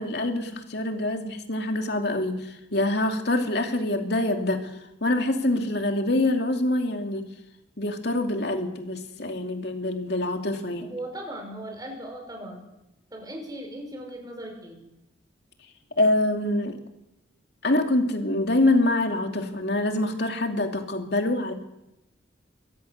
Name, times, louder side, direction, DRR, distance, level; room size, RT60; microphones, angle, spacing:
voice 1, 0.0-4.7 5.0-7.2 7.8-10.9 16.0-16.8 17.6-21.5, left 1 dB, 60° left, 4 dB, 2.7 m, -25 dB
voice 2, 10.8-12.6 13.1-14.8, right 1 dB, 20° right, 2 dB, 5.6 m, -38 dB
23.5 x 16.5 x 6.7 m, 0.89 s
head